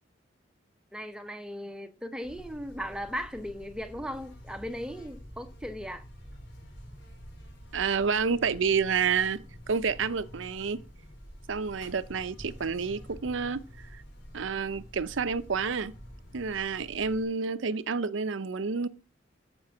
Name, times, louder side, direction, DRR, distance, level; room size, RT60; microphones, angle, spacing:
voice 1, 0.9-6.0, equal, 5° right, 0.8 m, -37 dB
Buzz, 2.2-17.2, equal, 60° left, 4.6 m, -48 dB
voice 2, 7.7-10.8 11.5-13.6 14.3-15.9 16.3-18.9, right 5 dB, 85° right, 0.6 m, -29 dB
13.5 x 5.3 x 5.8 m
head